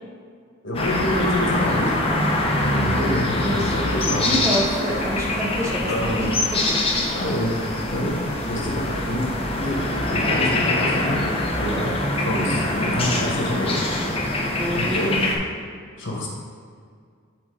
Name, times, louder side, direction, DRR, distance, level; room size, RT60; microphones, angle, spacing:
voice 1, 0.6-1.9 2.6-4.3 5.9-6.3 7.1-7.5 7.8-8.2 8.5-9.2 9.6-9.8 10.0-11.2 11.6-13.8 14.7-15.2 16.0-16.3, left 1 dB, 60° left, -2 dB, 1.5 m, -26 dB
sound 1, 0.7-15.4, left 1 dB, 25° left, 0.8 m, -24 dB
voice 2, 2.7-3.2 3.4-3.7 4.2-6.8 14.6-15.0, equal, 15° right, -2 dB, 0.7 m, -27 dB
6.5 x 4.3 x 4.8 m, 2.1 s
head